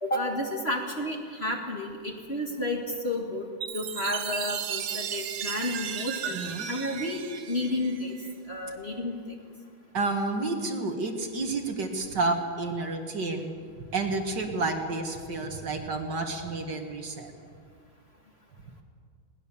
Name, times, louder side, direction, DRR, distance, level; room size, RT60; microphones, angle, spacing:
voice 1, 0.0-3.5 3.7-6.4 6.7-8.2 8.5-9.4, left 1 dB, 30° left, 2 dB, 1.9 m, -31 dB
Chime, 3.6-8.3, right 8 dB, 85° right, 2.0 m, -35 dB
voice 2, 6.3-6.7 9.9-13.5 13.9-17.3, right 3 dB, 55° right, 4 dB, 2.2 m, -30 dB
20.5 x 18.5 x 7.1 m, 2.1 s
omnidirectional pair, 2.3 m